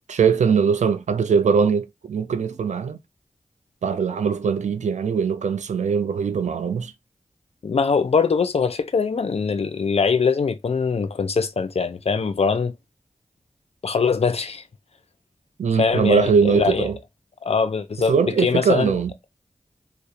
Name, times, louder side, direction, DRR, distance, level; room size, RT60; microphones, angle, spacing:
voice 1, 0.1-3.0 3.8-6.9 15.6-17.0 18.1-19.1, right 6 dB, 80° right, 0.4 m, -21 dB
voice 2, 7.6-12.7 13.8-14.6 15.8-16.9 17.4-18.9, left 5 dB, 60° left, 0.4 m, -22 dB
2.3 x 2.1 x 2.7 m
cardioid pair, 50°, 12 cm